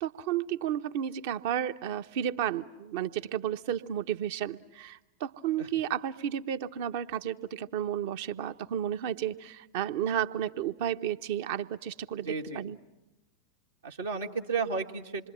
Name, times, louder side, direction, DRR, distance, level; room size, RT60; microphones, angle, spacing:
voice 1, 0.0-12.8, right 10 dB, 50° right, 10 dB, 0.9 m, -32 dB
voice 2, 12.2-12.7 13.8-15.3, right 5 dB, 70° right, 0 dB, 1.7 m, -33 dB
27.0 x 23.0 x 9.2 m, 1.0 s
figure-of-eight pair, 90°, 0 cm